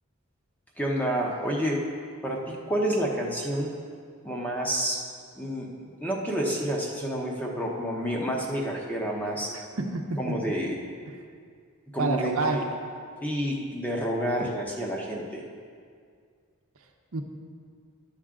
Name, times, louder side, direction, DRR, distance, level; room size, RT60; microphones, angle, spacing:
voice 1, 0.8-1.8 2.2-3.7 4.2-5.0 5.3-9.5 10.2-10.7 11.9-12.7 13.2-15.4, equal, 5° left, -2 dB, 0.9 m, -29 dB
voice 2, 9.5-10.5 12.0-12.6 17.1-17.2, right 3 dB, 75° right, 2 dB, 0.8 m, -28 dB
10.5 x 7.3 x 3.7 m, 2.1 s
head